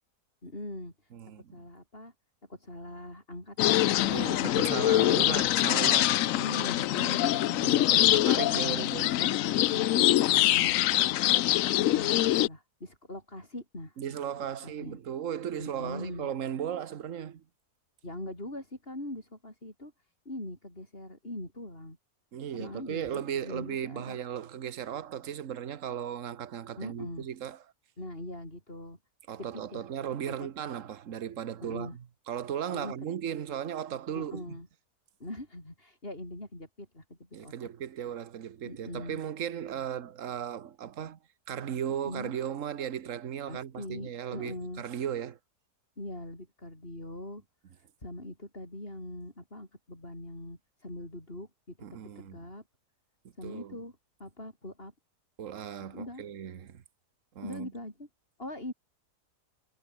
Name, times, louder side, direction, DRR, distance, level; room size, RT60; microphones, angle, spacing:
voice 1, 0.4-1.1 1.5-2.1 2.5-5.4 6.4-7.9 8.5-9.0 9.7-11.2 11.5-14.2 14.6-15.0 15.6-16.3 18.0-19.9 20.3-22.0 22.5-24.2 26.8-27.3 28.0-29.0 29.4-29.8 30.4-30.5 31.6-32.0 32.7-32.9 34.2-34.7 35.2-37.7 38.6-39.2 42.0-42.3 43.5-44.8 46.0-47.4 48.0-52.6 53.4-53.9 54.2-54.9 55.9-56.3 57.4-58.1 58.4-58.7, left 1 dB, 35° left, 7.1 m, -42 dB
voice 2, 1.1-1.6 4.1-6.2 7.4-9.4 14.0-17.4 22.3-27.6 29.3-34.5 37.3-41.2 41.5-45.4 51.8-52.4 53.4-53.8 55.4-56.8 57.3-57.7, right 9 dB, 55° right, 1.4 m, -36 dB
sound 1, 3.6-12.5, left 14 dB, 65° left, 0.8 m, -24 dB
omnidirectional pair, 1.7 m